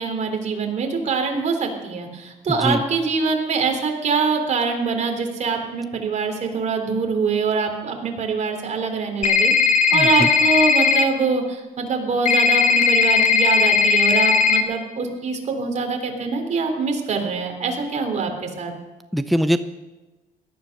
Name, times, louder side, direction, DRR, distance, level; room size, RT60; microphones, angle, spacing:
voice 1, 0.0-18.7, right 4 dB, 45° right, 3 dB, 3.5 m, -24 dB
sound 1, 9.2-11.0 12.3-14.6, left 5 dB, 50° left, 2.1 m, -17 dB
voice 2, 9.9-10.3 19.1-19.6, equal, ahead, 10 dB, 0.6 m, -21 dB
17.5 x 12.0 x 6.7 m, 1.2 s
cardioid pair, 110°, 17 cm